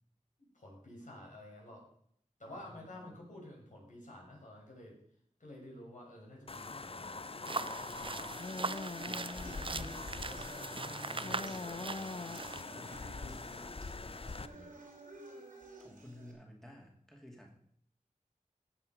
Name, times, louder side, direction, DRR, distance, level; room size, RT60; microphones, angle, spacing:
voice 1, 0.4-1.8 2.4-5.0 5.4-8.3 9.0-11.4 12.6-12.9 13.2-13.4 14.0-14.8, left 1 dB, 70° left, -3 dB, 5.4 m, -51 dB
voice 2, 2.7-3.2 10.8-13.1 15.8-17.6, equal, 5° left, 0 dB, 2.5 m, -54 dB
sound 1, 6.5-14.5, left 3 dB, 45° left, 0.6 m, -43 dB
sound 2, 7.4-12.6, right 3 dB, 40° right, 0.5 m, -41 dB
sound 3, 8.3-16.3, right 1 dB, 90° right, 3.4 m, -54 dB
15.5 x 7.0 x 5.3 m, 0.66 s
wide cardioid pair, 60°, 13 cm